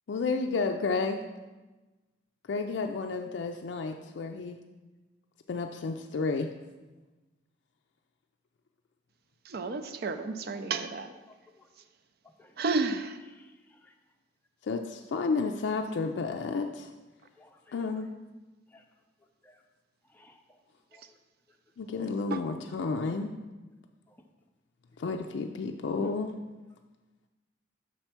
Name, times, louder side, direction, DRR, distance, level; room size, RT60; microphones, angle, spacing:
voice 1, 0.1-1.2 2.5-4.6 5.5-6.5 14.6-16.9 17.7-18.1 21.8-23.3 25.0-26.3, left 4 dB, 75° left, 4 dB, 0.4 m, -31 dB
voice 2, 9.5-11.1 12.6-13.2 22.3-22.4, right 3 dB, 55° right, 9 dB, 0.4 m, -31 dB
voice 3, 13.4-13.9 17.4-17.7 18.7-18.8 19.4-19.6 20.1-20.6 20.9-21.0 24.1-24.2, left 2 dB, 10° left, 3 dB, 0.5 m, -60 dB
6.1 x 4.4 x 5.8 m, 1.2 s
head